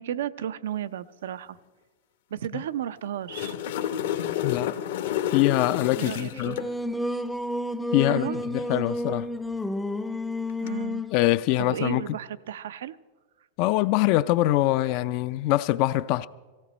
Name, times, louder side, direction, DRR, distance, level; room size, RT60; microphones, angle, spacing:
voice 1, 0.0-1.6 2.3-3.6 6.0-6.7 8.0-8.4 10.6-11.0 11.6-13.0, right 10 dB, 80° right, 0.5 m, -33 dB
sound 1, 3.1-6.7 10.5-10.7, left 10 dB, 70° left, 1.0 m, -29 dB
voice 2, 4.4-4.8 5.3-6.6 7.9-9.3 11.1-12.0 13.6-16.3, left 16 dB, 55° left, 0.4 m, -24 dB
Singing, 6.3-11.2, left 1 dB, 5° left, 0.5 m, -30 dB
17.5 x 16.0 x 4.2 m
hypercardioid pair, 120°, 0 cm